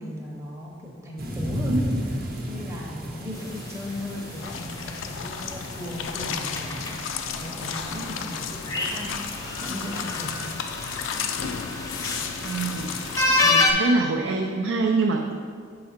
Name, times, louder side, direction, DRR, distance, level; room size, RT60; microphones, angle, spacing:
voice 1, 0.0-7.0 7.3-9.1 9.6-10.5, equal, 15° right, -2 dB, 0.7 m, -35 dB
sound 1, 1.2-13.6, equal, 50° right, 0.8 m, -36 dB
sound 2, 3.3-13.7, left 2 dB, 15° left, 0.6 m, -30 dB
sound 3, 4.4-13.5, left 7 dB, 70° left, 0.4 m, -33 dB
voice 2, 12.4-15.3, right 3 dB, 75° right, 2 dB, 0.4 m, -25 dB
6.5 x 4.8 x 4.3 m, 2.1 s
head